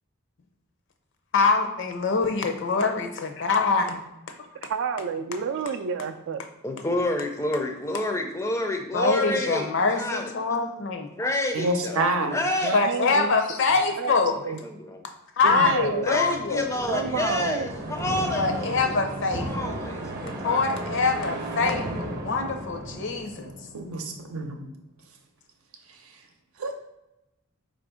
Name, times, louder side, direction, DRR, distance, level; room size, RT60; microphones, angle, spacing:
voice 1, 1.3-4.0 8.9-11.1 12.7-14.4 15.4-16.6 18.4-19.7 20.4-23.5, left 4 dB, 60° left, 5 dB, 0.6 m, -24 dB
voice 2, 4.7-6.4 12.6-13.4 14.0-14.2 14.4-14.6 15.4-16.0 16.9-17.7, right 6 dB, 60° right, 8 dB, 0.3 m, -29 dB
voice 3, 6.6-10.3 11.2-12.0 12.3-12.8 14.6-15.0 16.0-19.0 19.4-20.8, left 1 dB, 15° left, 4 dB, 0.4 m, -29 dB
voice 4, 11.5-12.4 15.5-15.7 23.7-24.7 26.6-26.7, right 2 dB, 85° right, 4 dB, 0.7 m, -27 dB
sound 1, 15.5-24.3, right 1 dB, 45° right, 0.7 m, -35 dB
4.3 x 2.5 x 4.8 m, 0.90 s
head